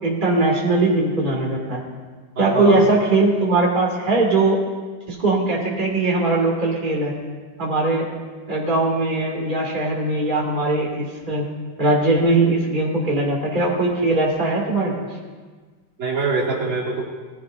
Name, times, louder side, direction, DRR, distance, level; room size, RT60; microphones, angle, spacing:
voice 1, 0.0-1.8 2.4-4.6 5.1-7.1 7.6-8.1 8.5-11.4 11.8-15.1, right 2 dB, 25° right, -3 dB, 2.5 m, -20 dB
voice 2, 2.4-2.9 16.0-17.0, right 3 dB, 75° right, -5 dB, 3.1 m, -23 dB
19.5 x 15.0 x 2.6 m, 1.4 s
omnidirectional pair, 2.1 m